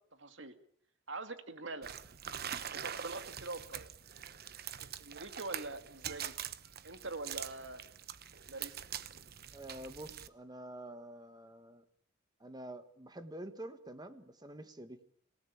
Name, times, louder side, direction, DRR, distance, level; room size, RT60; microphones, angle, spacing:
voice 1, 0.1-0.5 1.1-1.9 2.7-3.9 4.8-6.3 6.8-7.8 8.5-8.8, right 3 dB, 65° right, 9 dB, 2.3 m, -44 dB
sound 1, 1.8-10.3, right 9 dB, 50° right, 1.0 m, -44 dB
voice 2, 9.5-11.8 12.4-15.0, right 1 dB, 20° right, 10 dB, 1.3 m, -47 dB
27.0 x 17.5 x 8.6 m, 0.63 s
head